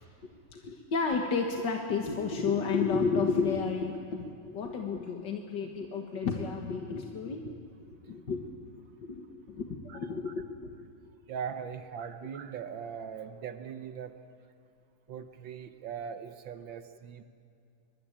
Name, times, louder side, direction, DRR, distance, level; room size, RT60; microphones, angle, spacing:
voice 1, 0.0-7.6 8.0-8.5 9.0-10.7, left 5 dB, 45° left, 2 dB, 1.6 m, -32 dB
voice 2, 11.3-14.1 15.1-17.2, right 7 dB, 75° right, 8 dB, 1.1 m, -40 dB
23.5 x 22.5 x 8.9 m, 2.4 s
omnidirectional pair, 3.5 m